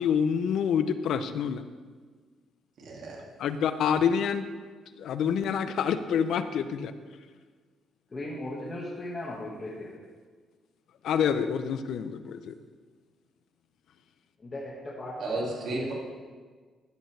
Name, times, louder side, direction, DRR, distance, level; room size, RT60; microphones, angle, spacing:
voice 1, 0.0-1.6 3.4-4.5 5.0-6.9 11.0-12.5, left 7 dB, 75° left, 11 dB, 0.5 m, -27 dB
voice 2, 2.8-3.3 15.2-15.9, right 2 dB, 65° right, -2 dB, 2.3 m, -33 dB
voice 3, 8.1-10.0 14.4-15.4 15.8-15.9, left 1 dB, 30° left, -4 dB, 1.7 m, -37 dB
12.5 x 7.9 x 3.3 m, 1.5 s
cardioid pair, 90°, 0 cm